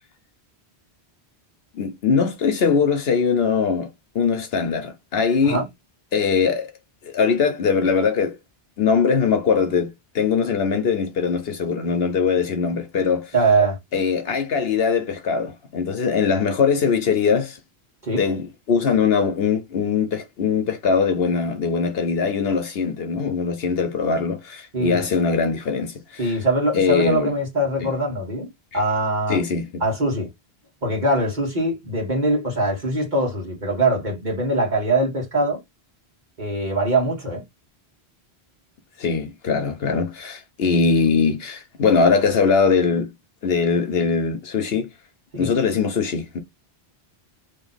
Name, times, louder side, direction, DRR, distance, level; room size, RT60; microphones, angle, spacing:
voice 1, 1.7-3.9 4.1-5.6 6.1-6.7 7.0-8.4 8.8-13.3 13.9-17.6 18.2-26.4 26.7-27.3 27.8-27.9 29.3-29.8 39.0-43.1 43.4-44.9 45.4-46.4, left 5 dB, 65° left, 1.0 m, -21 dB
voice 2, 13.3-13.8 18.0-18.2 24.7-25.0 26.2-29.4 29.8-30.3 30.8-35.6 36.4-37.4 45.3-45.5, right 2 dB, 45° right, 1.6 m, -22 dB
2.9 x 2.9 x 4.0 m
omnidirectional pair, 1.1 m